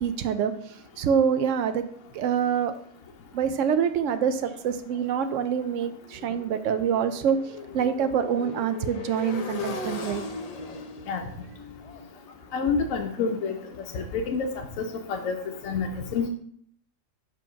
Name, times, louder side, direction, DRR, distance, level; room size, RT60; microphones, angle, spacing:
voice 1, 0.0-1.8 2.1-2.7 3.3-7.4 7.7-10.2, right 7 dB, 70° right, 0.8 m, -26 dB
Motorcycle, 4.2-14.1, left 4 dB, 85° left, 0.3 m, -39 dB
voice 2, 12.5-13.6 13.9-14.5 14.8-16.3, left 5 dB, 70° left, 0.9 m, -28 dB
4.9 x 3.8 x 5.7 m
omnidirectional pair, 1.6 m